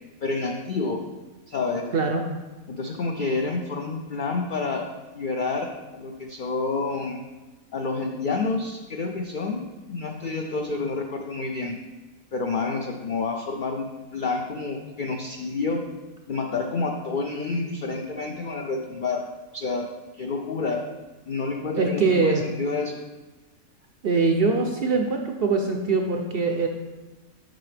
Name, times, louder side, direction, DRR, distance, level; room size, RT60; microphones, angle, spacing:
voice 1, 0.2-1.1 1.5-1.9 2.8-4.9 5.1-7.2 7.7-11.8 12.3-15.9 16.3-20.9 21.3-23.0, left 3 dB, 75° left, 3 dB, 0.4 m, -29 dB
voice 2, 21.8-22.4 24.0-26.7, right 4 dB, 65° right, 4 dB, 0.6 m, -22 dB
7.7 x 5.6 x 3.3 m, 1.2 s
omnidirectional pair, 1.5 m